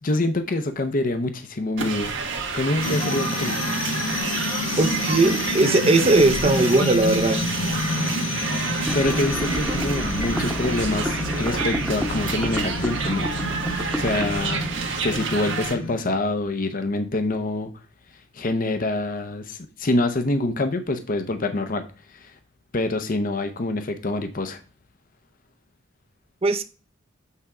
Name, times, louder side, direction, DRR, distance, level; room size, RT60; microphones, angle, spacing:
voice 1, 0.0-2.1 2.5-3.6 8.9-14.6 15.0-17.7 18.3-22.3 22.7-24.6, left 2 dB, 45° left, 0.8 m, -26 dB
sound 1, 1.8-15.7, right 4 dB, 70° right, 1.5 m, -30 dB
sound 2, 2.8-16.1, left 1 dB, 85° left, 1.4 m, -29 dB
voice 2, 4.8-7.4 26.4-26.6, right 2 dB, 30° right, 0.7 m, -19 dB
sound 3, 8.9-15.9, equal, ahead, 1.0 m, -32 dB
8.4 x 3.5 x 4.9 m
head